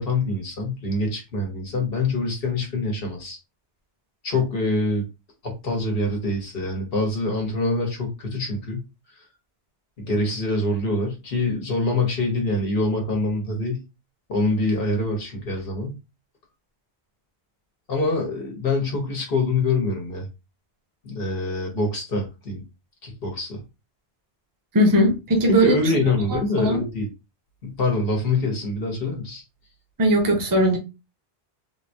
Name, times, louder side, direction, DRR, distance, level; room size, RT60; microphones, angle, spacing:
voice 1, 0.0-3.4 4.2-5.0 5.4-8.8 10.0-13.8 14.3-15.9 17.9-20.3 21.0-22.6 23.0-23.6 25.5-27.1 27.6-29.4, left 2 dB, 65° left, 1.2 m, -25 dB
voice 2, 24.7-25.8 26.3-26.8 30.0-30.8, equal, 20° right, 0.7 m, -19 dB
3.6 x 2.2 x 2.7 m
omnidirectional pair, 1.1 m